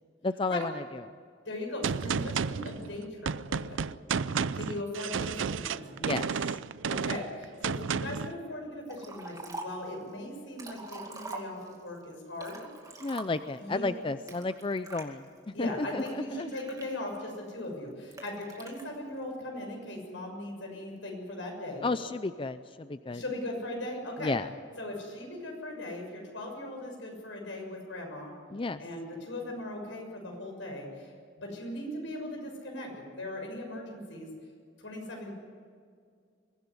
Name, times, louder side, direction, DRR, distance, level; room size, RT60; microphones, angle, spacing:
voice 1, 0.2-0.8 4.3-4.5 6.0-6.6 13.0-16.5 21.8-23.2 24.2-24.5 28.5-28.8, left 3 dB, 25° left, 12 dB, 0.5 m, -32 dB
voice 2, 1.4-3.9 4.5-6.0 6.9-12.7 13.6-13.9 15.5-21.9 23.1-24.4 24.8-28.3 28.8-31.1 31.4-34.3 34.8-35.3, left 1 dB, 80° left, 2 dB, 6.6 m, -39 dB
Gunshot gunfire, 1.8-8.3, right 6 dB, 85° right, 0.5 m, -32 dB
Liquid, 8.9-9.9 10.4-11.9 12.3-13.6 14.3-15.1 15.7-17.3 18.1-18.8, right 3 dB, 20° right, 2.4 m, -44 dB
23.0 x 16.0 x 9.7 m, 2.1 s
head